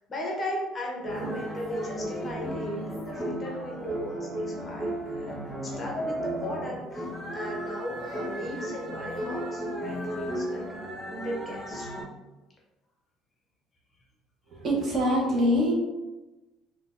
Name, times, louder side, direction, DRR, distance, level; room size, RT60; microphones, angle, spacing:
voice 1, 0.0-11.9, equal, 25° left, -2 dB, 0.6 m, -37 dB
sound 1, 1.0-12.0, equal, 5° right, 1.3 m, -34 dB
voice 2, 14.5-15.8, equal, 35° right, -3 dB, 0.9 m, -24 dB
3.8 x 2.3 x 2.4 m, 1.1 s
cardioid pair, 155°, 0 cm